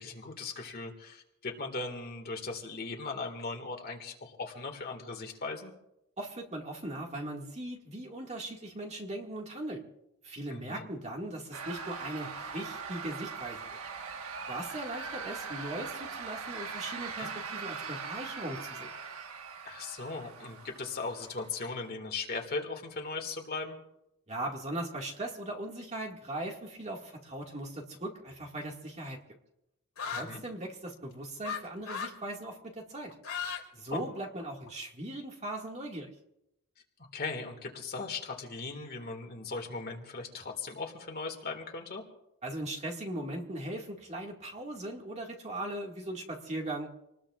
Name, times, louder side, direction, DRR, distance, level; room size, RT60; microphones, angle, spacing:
voice 1, 0.0-5.7 10.5-10.9 17.2-17.3 19.7-23.8 30.1-30.4 33.9-34.0 37.1-42.0, left 3 dB, 45° left, 2 dB, 2.0 m, -38 dB
voice 2, 6.2-9.8 10.2-13.7 14.5-18.9 24.3-29.2 30.0-33.2 33.7-36.1 42.4-46.9, right 1 dB, 30° right, 0 dB, 2.1 m, -39 dB
sound 1, 11.5-21.6, right 5 dB, 80° right, 1.5 m, -41 dB
sound 2, 30.0-30.3 31.4-31.6 31.8-32.2 33.1-33.6 33.9-34.7, left 6 dB, 75° left, 2.6 m, -36 dB
27.0 x 20.0 x 2.5 m, 0.84 s
head